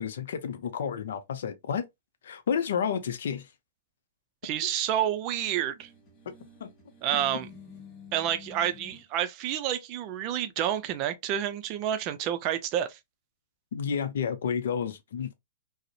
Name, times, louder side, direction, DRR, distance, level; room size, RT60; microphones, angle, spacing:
voice 1, 0.0-1.9 2.2-3.5 6.6-6.7 13.7-15.3, left 7 dB, 75° left, 0.5 m, -30 dB
voice 2, 4.4-5.9 7.0-7.5 8.1-13.0, right 10 dB, 40° right, 0.4 m, -29 dB
sound 1, 5.8-9.1, left 5 dB, 30° left, 1.0 m, -49 dB
2.5 x 2.0 x 2.6 m
hypercardioid pair, 130°, 0 cm